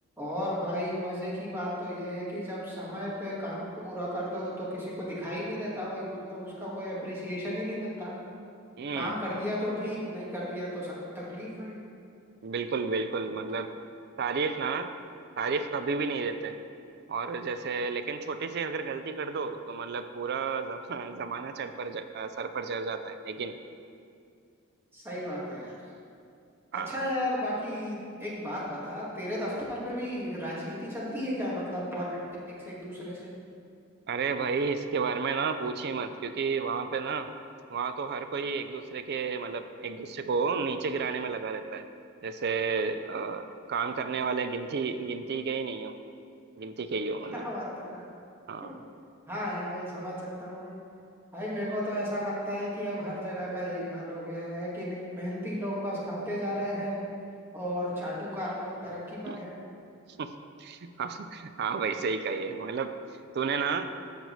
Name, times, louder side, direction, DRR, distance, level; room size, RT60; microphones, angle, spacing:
voice 1, 0.2-8.1 8.9-11.7 24.9-25.8 26.7-33.3 47.3-48.0 48.6-48.7 49.3-50.8 51.3-57.0 57.5-59.6, equal, 10° right, -6 dB, 1.8 m, -34 dB
voice 2, 8.8-9.1 12.4-13.7 14.2-14.9 15.4-16.5 17.1-23.6 26.7-27.0 34.1-37.3 37.7-41.8 42.2-45.9 46.6-47.4 48.5-48.7 59.3-59.4 60.2-60.3 60.6-62.9 63.3-63.9, right 5 dB, 55° right, 9 dB, 0.4 m, -32 dB
14.0 x 5.2 x 3.1 m, 2.4 s
head